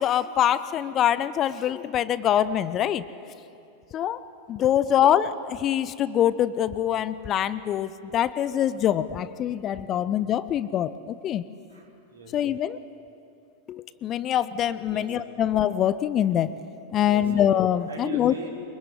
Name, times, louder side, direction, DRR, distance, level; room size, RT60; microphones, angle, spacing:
voice 1, 0.0-3.0 3.9-4.2 4.5-11.4 12.3-12.8 13.7-16.5 16.9-18.3, left 10 dB, 30° left, 16 dB, 0.7 m, -24 dB
voice 2, 11.7-12.4 14.8-15.1 17.0-17.5 17.8-18.5, right 4 dB, 75° right, 0 dB, 4.6 m, -40 dB
24.0 x 22.0 x 9.4 m, 2.6 s
figure-of-eight pair, 90°, 0 cm